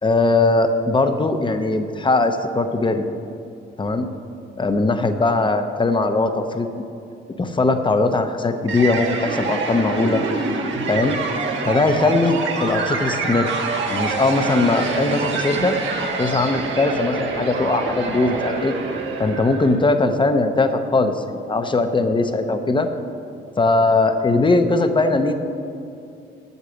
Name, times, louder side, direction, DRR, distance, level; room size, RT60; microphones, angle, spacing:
voice 1, 0.0-3.0 3.8-4.1 4.6-6.8 7.4-10.2 10.9-11.2 11.6-13.5 13.9-15.8 16.2-18.8 19.2-22.9 23.6-25.3, left 3 dB, 25° left, 8 dB, 0.8 m, -20 dB
sound 1, 8.7-19.8, right 4 dB, 70° right, 1.4 m, -26 dB
8.2 x 7.3 x 8.1 m, 2.5 s
cardioid pair, 90°, 20 cm